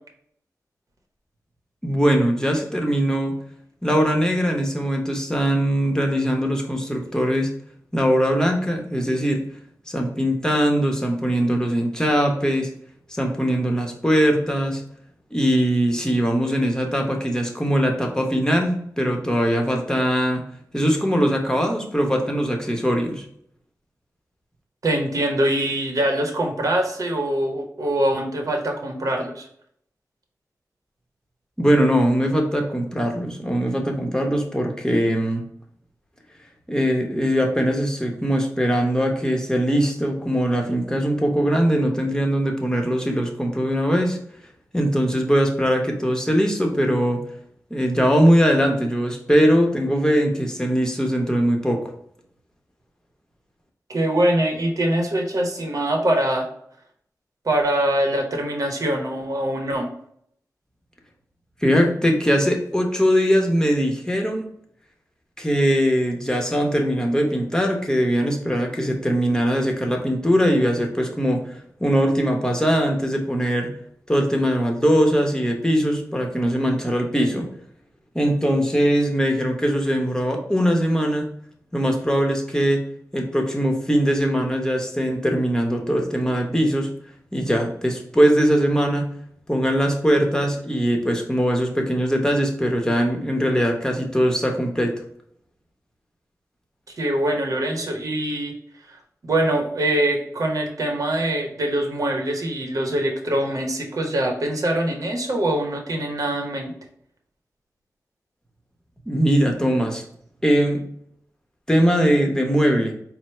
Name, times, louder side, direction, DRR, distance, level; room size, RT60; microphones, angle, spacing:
voice 1, 1.8-3.3 3.8-7.5 7.9-9.4 9.9-12.7 13.1-14.8 15.3-20.4 20.7-23.2 31.6-35.4 36.7-44.2 44.7-47.2 47.7-51.9 61.6-64.5 65.4-73.7 74.1-77.5 78.1-81.3 81.7-82.8 83.1-86.9 87.3-89.1 89.5-94.9 109.1-110.0 110.4-110.8 111.7-112.9, equal, 10° left, 2 dB, 0.9 m, -21 dB
voice 2, 24.8-29.5 53.9-56.5 57.4-59.9 97.0-98.5 99.2-106.7, right 1 dB, 60° right, 2 dB, 0.9 m, -23 dB
4.3 x 2.0 x 4.3 m, 0.68 s
cardioid pair, 50°, 6 cm